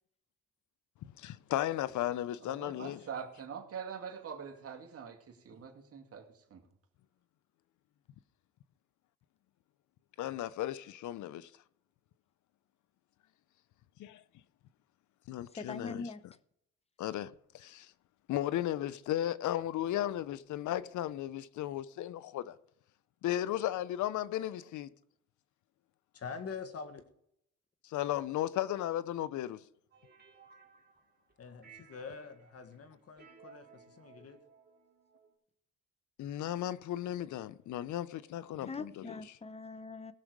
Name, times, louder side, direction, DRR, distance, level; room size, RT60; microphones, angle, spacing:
voice 1, 1.2-3.0 10.2-11.5 14.0-14.2 15.3-16.1 17.0-17.9 18.3-22.5 23.2-24.9 27.8-29.6 36.2-39.1, left 12 dB, 75° left, 0.7 m, -35 dB
voice 2, 2.4-6.3 6.5-6.6, right 7 dB, 50° right, 2.3 m, -44 dB
voice 3, 15.6-16.2 38.7-40.1, left 4 dB, 20° left, 0.8 m, -42 dB
voice 4, 26.1-27.0 31.4-34.4, left 5 dB, 50° left, 1.7 m, -45 dB
sound 1, 29.9-31.3 31.6-35.3, right 6 dB, 30° right, 2.9 m, -59 dB
18.0 x 6.4 x 4.7 m
cardioid pair, 90°, 30 cm